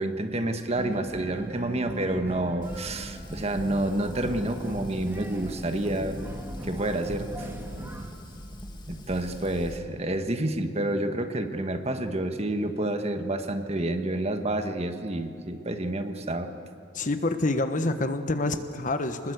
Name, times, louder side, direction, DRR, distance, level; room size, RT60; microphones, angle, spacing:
voice 1, 0.0-6.2 6.6-7.5 8.9-16.5, right 1 dB, 35° right, 7 dB, 1.4 m, -29 dB
sound 1, 0.7-8.1, right 1 dB, 10° right, 1.8 m, -39 dB
Fire, 2.6-9.8, equal, 25° left, 2.0 m, -42 dB
voice 2, 16.9-19.3, left 2 dB, 45° left, 9 dB, 1.2 m, -27 dB
24.5 x 20.5 x 8.2 m, 2.4 s
head